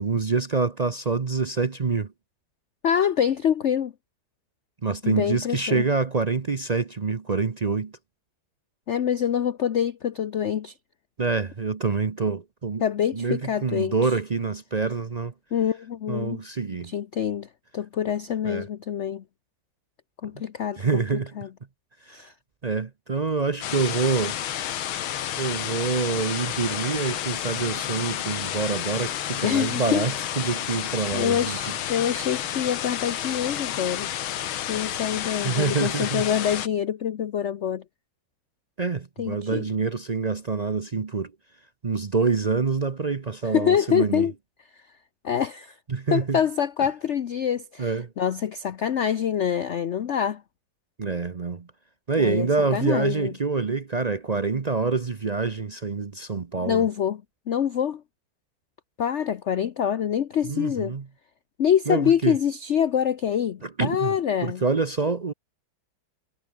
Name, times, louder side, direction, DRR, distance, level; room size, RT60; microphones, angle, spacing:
voice 1, 0.0-2.1 4.8-7.9 11.2-12.8 13.1-15.3 16.1-16.9 18.4-18.6 20.8-21.3 22.1-22.3 22.6-24.4 25.4-31.6 35.4-36.3 38.8-41.3 41.8-44.3 45.9-46.4 47.8-48.1 51.0-51.7 52.1-56.9 60.4-61.0 61.9-62.4 63.6-64.1 64.4-65.3, right 4 dB, 70° right, 0.4 m, -26 dB
voice 2, 2.8-3.9 5.0-5.9 8.9-10.7 12.8-14.2 15.5-16.4 16.8-17.5 17.7-19.2 20.2-21.5 22.1-22.3 29.4-30.1 31.1-34.1 34.7-37.8 39.2-39.7 43.5-44.3 45.2-45.7 46.1-50.4 52.2-53.3 56.6-57.2 57.5-58.0 59.0-61.0 61.6-64.6, left 9 dB, 60° left, 0.7 m, -25 dB
sound 1, 23.6-36.7, left 11 dB, 85° left, 2.0 m, -31 dB
omnidirectional pair, 2.2 m